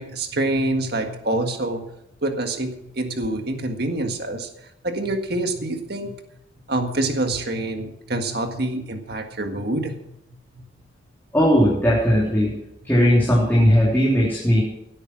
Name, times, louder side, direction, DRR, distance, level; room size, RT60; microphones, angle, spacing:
voice 1, 0.0-1.9 2.2-2.7 2.9-4.5 4.8-6.1 6.7-9.9, right 2 dB, 50° right, 5 dB, 1.7 m, -26 dB
voice 2, 11.3-12.5 12.8-14.6, equal, 10° left, -6 dB, 3.2 m, -17 dB
16.5 x 8.7 x 6.1 m, 0.81 s
head